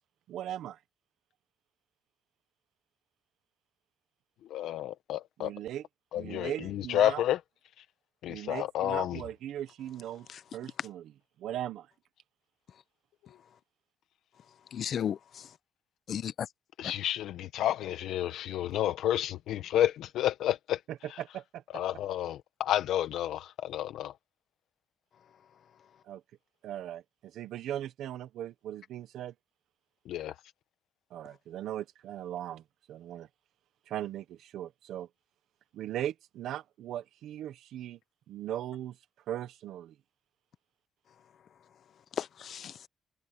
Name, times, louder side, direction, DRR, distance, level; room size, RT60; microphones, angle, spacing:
voice 1, 0.3-0.8 5.4-5.8 6.1-7.2 8.3-10.3 10.5-11.0 11.4-11.9 20.9-21.8 26.0-26.2 26.6-29.3 31.1-32.6 32.9-33.3 33.9-35.1 35.7-38.0 38.3-39.0 39.3-39.9, right 12 dB, 85° right, 0.8 m, -38 dB
voice 2, 4.5-5.5 6.1-7.4 7.8-7.9 8.2-9.2 16.8-20.8 21.1-21.2 21.7-24.1 30.1-30.4, left 12 dB, 85° left, 0.8 m, -30 dB
voice 3, 14.7-15.5 16.1-16.5 42.2-42.9, left 9 dB, 55° left, 0.6 m, -35 dB
cardioid pair, 125°, 0 cm